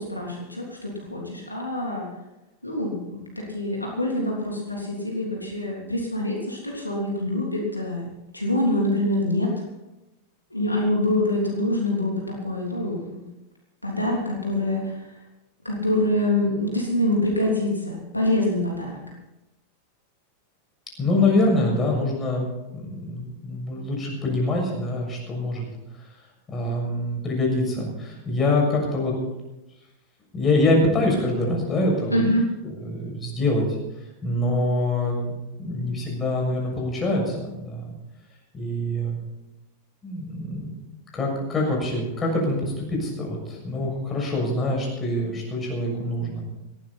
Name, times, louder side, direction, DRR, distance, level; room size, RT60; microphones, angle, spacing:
voice 1, 0.0-2.1 2.6-9.5 10.5-13.2 13.8-15.1 15.6-19.0 32.1-32.5, left 1 dB, 85° left, -2 dB, 3.3 m, -25 dB
voice 2, 21.0-25.7 26.5-29.2 30.3-32.2 32.6-33.7 34.2-37.9 38.5-39.2 40.0-40.7 41.1-46.4, left 2 dB, 20° left, -1 dB, 6.8 m, -25 dB
18.0 x 15.0 x 4.3 m, 0.98 s
figure-of-eight pair, 90°, 0 cm